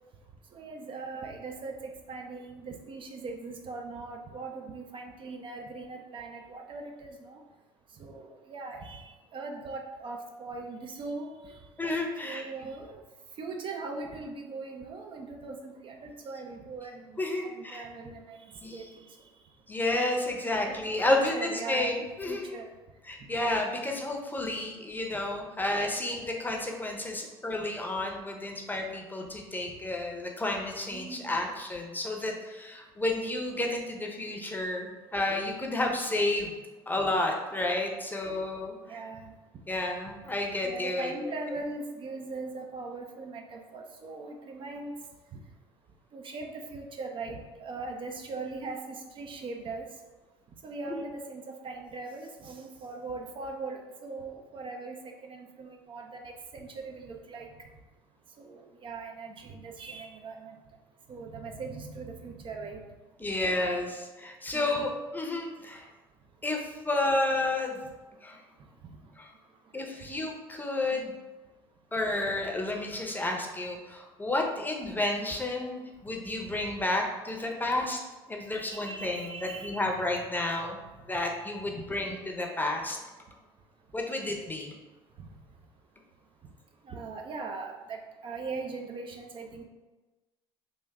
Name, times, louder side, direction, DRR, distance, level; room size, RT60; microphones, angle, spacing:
voice 1, 0.5-1.7 2.1-7.4 8.0-11.5 12.2-13.0 13.4-19.1 20.7-20.8 21.1-22.6 30.9-31.4 38.9-39.3 40.6-44.9 46.1-49.8 50.6-55.0 55.2-57.5 58.4-60.6 61.1-62.8 64.5-64.9 78.6-79.9 81.7-82.0 85.2-85.3 86.9-89.6, right 3 dB, 45° right, 2 dB, 0.6 m, -40 dB
voice 2, 11.8-12.4 17.2-17.8 18.6-18.7 19.7-22.6 23.1-36.5 36.9-38.7 39.7-41.1 63.2-65.9 66.4-67.8 68.2-68.4 69.2-69.3 69.7-71.1 71.9-78.0 78.3-80.8 81.1-83.0 83.9-84.7, left 2 dB, 15° left, 1 dB, 0.7 m, -31 dB
3.5 x 2.5 x 3.5 m, 1.2 s
hypercardioid pair, 65°, 12 cm